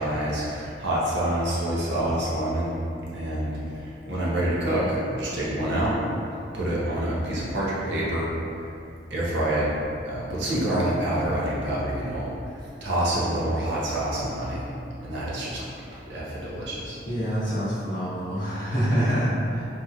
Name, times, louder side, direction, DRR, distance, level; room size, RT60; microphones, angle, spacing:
voice 1, 0.0-2.7 3.1-3.6 4.1-6.0 6.5-8.3 9.1-9.7 10.1-12.3 12.8-14.6 15.0-15.7 16.1-17.0, right 1 dB, 80° right, -6 dB, 0.6 m, -27 dB
voice 2, 17.1-19.7, equal, 45° left, -13 dB, 0.6 m, -26 dB
2.8 x 2.5 x 2.2 m, 2.6 s
head